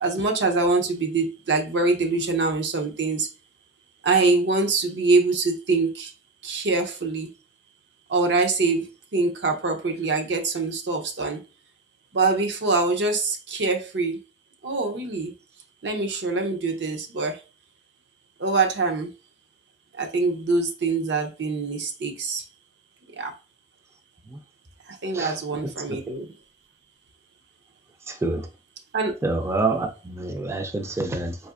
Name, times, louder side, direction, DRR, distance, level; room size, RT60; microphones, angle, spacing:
voice 1, 0.0-3.3 4.0-6.1 6.4-7.3 8.1-11.4 12.1-14.2 14.6-15.3 15.8-17.4 18.4-19.1 20.0-22.4 23.1-23.3 24.9-26.3 28.9-29.1, right 3 dB, 80° right, 0.7 m, -24 dB
voice 2, 28.1-28.5 29.2-31.4, right 2 dB, 15° right, 0.3 m, -27 dB
4.1 x 2.6 x 2.4 m
head